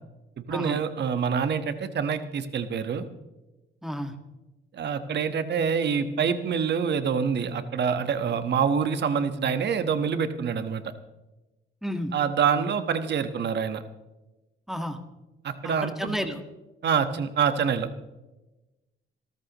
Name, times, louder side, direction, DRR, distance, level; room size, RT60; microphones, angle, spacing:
voice 1, 0.4-3.0 4.7-10.8 12.1-13.8 15.4-16.2 16.8-17.9, right 6 dB, 60° right, 10 dB, 1.3 m, -26 dB
voice 2, 3.8-4.1 11.8-12.1 14.7-15.0 15.8-16.4, equal, ahead, 6 dB, 1.6 m, -31 dB
25.5 x 13.5 x 3.0 m, 1.0 s
cardioid pair, 90°, 20 cm